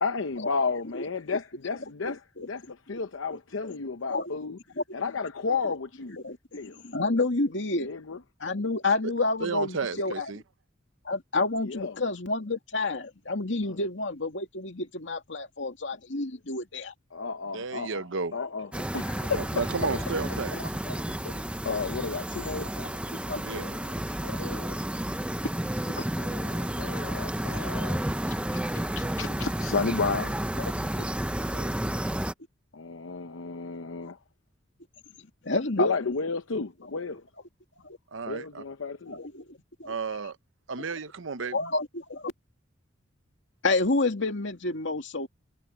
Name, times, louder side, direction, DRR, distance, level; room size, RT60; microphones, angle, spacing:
voice 1, 0.0-4.6 4.9-6.2 6.5-6.8 7.8-8.2 11.6-11.9 13.7-13.8 17.1-18.0 18.3-19.7 21.1-21.3 21.6-22.7 23.5-24.0 26.2-28.6 29.0-30.3 32.7-34.2 35.8-37.2 38.3-39.2, left 4 dB, 90° left, 0.8 m, -32 dB
voice 2, 2.0-2.5 3.3-3.4 3.6-3.8 4.1-4.3 4.8-4.9 6.1-6.4 6.6-7.9 8.4-10.3 11.0-16.9 18.7-18.8 19.8-20.0 20.5-21.4 22.5-23.4 24.2-24.8 25.8-26.0 28.7-28.8 31.0-31.1 34.0-34.1 35.4-35.9 37.8-38.0 39.1-39.9 41.5-42.3 43.6-45.3, left 2 dB, 70° left, 2.4 m, -30 dB
voice 3, 9.4-10.4 17.5-18.3 19.4-20.6 23.4-23.6 31.5-31.7 38.1-38.6 39.9-40.4 40.7-41.6, right 4 dB, 80° right, 0.9 m, -32 dB
sound 1, 18.7-32.3, right 1 dB, 5° right, 0.7 m, -31 dB
head